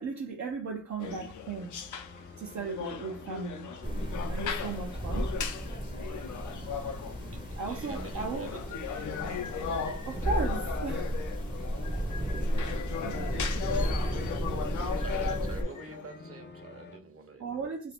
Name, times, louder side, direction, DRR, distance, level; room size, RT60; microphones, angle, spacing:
voice 1, 0.0-1.8 2.4-3.7 4.3-5.3 7.6-8.5 10.0-11.1 11.8-11.9 13.0-13.3 14.2-14.3 17.4-17.9, right 4 dB, 70° right, 0.6 m, -36 dB
sound 1, 1.0-16.1, left 7 dB, 90° left, 0.5 m, -37 dB
sound 2, 1.2-17.0, left 4 dB, 35° left, 0.5 m, -50 dB
sound 3, 3.8-15.6, equal, 15° right, 0.6 m, -34 dB
voice 2, 7.3-9.0 11.8-12.3 14.8-17.8, right 4 dB, 50° right, 0.9 m, -46 dB
2.6 x 2.4 x 3.4 m
cardioid pair, 50°, 30 cm